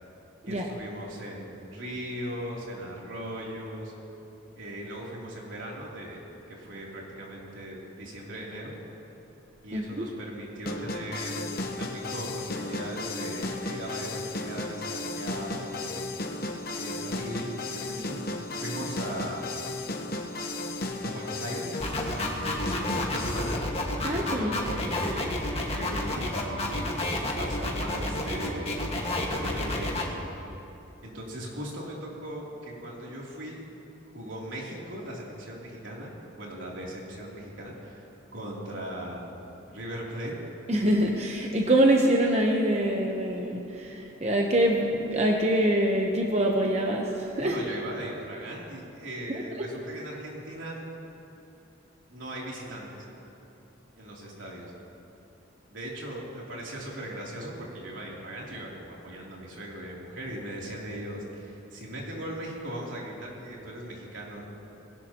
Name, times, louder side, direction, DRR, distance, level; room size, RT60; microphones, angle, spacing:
voice 1, 0.4-3.9 4.5-6.2 6.5-8.8 9.6-11.4 11.8-16.0 16.8-18.3 18.6-19.9 21.0-21.8 22.4-23.6 24.3-28.9 29.3-29.9 31.0-33.6 34.1-38.1 38.3-39.3 39.7-40.4 47.4-50.8 52.1-53.0 54.0-54.7 55.7-64.4, right 1 dB, 80° right, -4 dB, 3.2 m, -38 dB
voice 2, 9.7-10.0 24.0-24.5 40.7-47.6 49.3-49.4, right 1 dB, 35° right, 1 dB, 1.0 m, -25 dB
sound 1, 10.7-23.6, left 2 dB, 50° left, 1.0 m, -34 dB
sound 2, 21.8-30.0, left 1 dB, 30° left, 1.7 m, -30 dB
20.5 x 17.0 x 3.0 m, 2.9 s
head